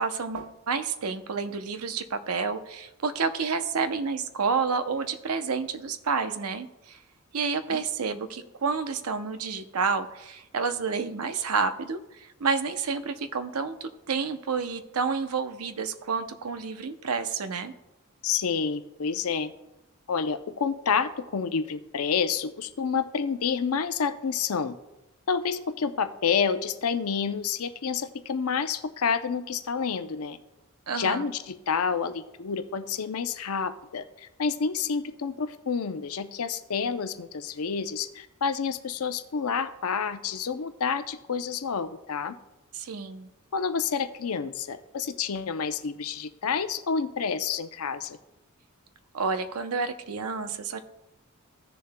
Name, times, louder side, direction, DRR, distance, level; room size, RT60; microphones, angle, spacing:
voice 1, 0.0-7.0 7.3-17.7 30.9-31.3 42.7-43.3 49.1-50.8, right 5 dB, 85° right, 10 dB, 0.7 m, -29 dB
voice 2, 18.2-19.5 20.1-24.8 25.3-30.4 30.9-42.4 43.5-48.2, left 6 dB, 75° left, 10 dB, 0.6 m, -29 dB
16.5 x 6.9 x 2.2 m, 0.98 s
head